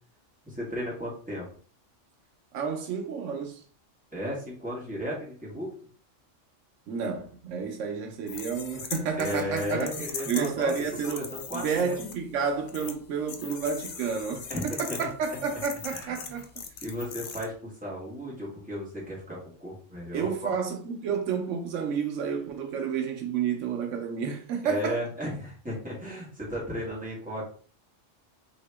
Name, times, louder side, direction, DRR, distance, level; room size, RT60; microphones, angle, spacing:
voice 1, 0.5-1.5 4.1-5.7 9.2-10.7 11.0-12.0 14.5-15.1 15.9-16.1 16.8-20.5 24.6-27.4, equal, 5° right, 1.3 m, -35 dB
voice 2, 2.5-3.6 6.9-11.2 11.5-16.5 20.1-25.0, right 6 dB, 90° right, 1.0 m, -30 dB
sound 1, 8.3-12.1 12.7-12.9 13.3-17.4, left 6 dB, 60° left, 0.6 m, -40 dB
2.8 x 2.8 x 3.3 m
omnidirectional pair, 1.3 m